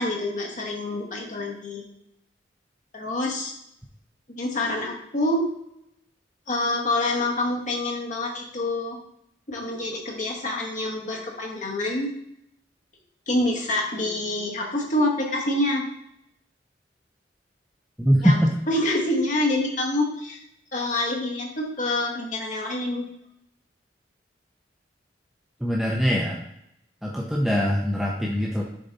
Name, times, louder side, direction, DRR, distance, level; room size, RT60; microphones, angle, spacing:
voice 1, 0.0-1.8 2.9-3.5 4.4-5.4 6.5-9.0 9.5-12.1 13.3-15.8 18.2-18.4 18.7-20.4 20.7-23.0, left 1 dB, 45° left, -1 dB, 1.3 m, -26 dB
voice 2, 18.0-18.5 25.6-26.4 27.0-28.6, equal, ahead, -2 dB, 0.5 m, -22 dB
6.8 x 3.9 x 4.0 m, 0.77 s
head